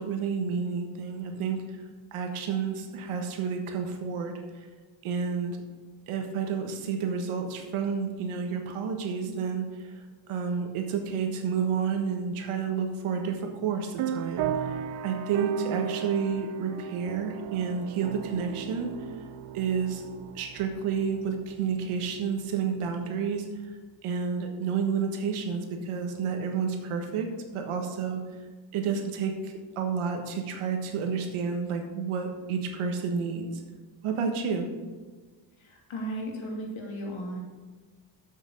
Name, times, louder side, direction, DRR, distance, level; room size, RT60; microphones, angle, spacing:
voice 1, 0.0-1.6 2.1-4.4 5.0-5.6 6.1-9.9 10.3-14.4 15.0-18.9 19.5-20.1 20.3-23.5 24.0-27.3 27.5-28.2 28.7-33.5 34.0-34.7, right 6 dB, 85° right, 4 dB, 1.5 m, -30 dB
sound 1, 14.0-22.1, right 8 dB, 60° right, 0.7 m, -35 dB
voice 2, 35.6-37.4, right 1 dB, 75° left, -1 dB, 2.9 m, -35 dB
7.8 x 6.4 x 6.2 m, 1.4 s
cardioid pair, 95°, 49 cm